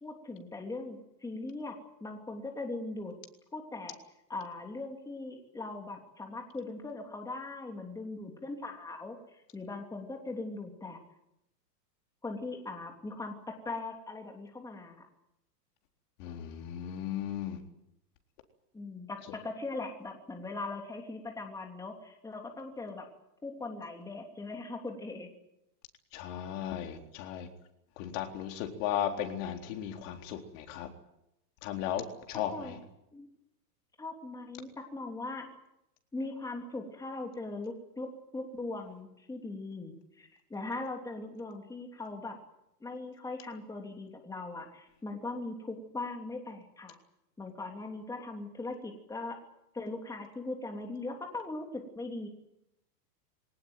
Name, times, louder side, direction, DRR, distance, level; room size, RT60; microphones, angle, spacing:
voice 1, 0.0-3.1 3.5-4.0 4.3-11.0 12.2-15.1 18.7-23.1 23.4-25.3 32.5-32.8 33.1-33.3 34.0-35.5 36.1-42.4 42.8-47.0 47.4-49.4 49.7-52.3, left 2 dB, 5° left, 2 dB, 3.1 m, -40 dB
voice 2, 16.2-17.6 26.1-27.5 28.0-30.9 31.6-32.8, left 10 dB, 45° left, 4 dB, 3.9 m, -36 dB
23.5 x 19.0 x 9.2 m, 0.83 s
hypercardioid pair, 140°, 50 cm